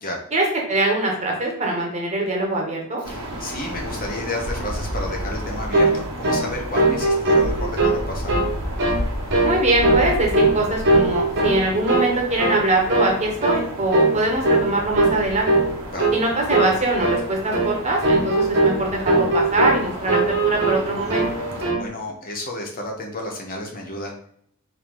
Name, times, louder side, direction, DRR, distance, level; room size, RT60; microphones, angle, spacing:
voice 1, 0.3-3.0 9.4-15.5 16.1-21.2, right 2 dB, 30° right, 0 dB, 1.1 m, -22 dB
sound 1, 3.0-21.7, equal, 80° right, 1.2 m, -32 dB
voice 2, 3.1-8.4 15.9-16.1 21.8-24.1, left 1 dB, 40° left, 1 dB, 0.9 m, -31 dB
sound 2, 5.7-6.0 6.2-6.5 6.7-8.0 8.3-8.5 8.8-9.0 9.3-9.6 9.8-10.6 10.8-11.6 11.9-12.1 12.4-12.6 12.9-13.1 13.4-13.6 13.9-14.2 14.4-14.7 15.0-15.2 15.5-15.7 16.0-16.2 16.5-16.8 17.0-17.2 17.5-17.7 18.0-18.8 19.1-19.8 20.1-20.8 21.1-21.8, right 2 dB, 55° right, 1.1 m, -19 dB
4.6 x 3.0 x 3.8 m, 0.63 s
head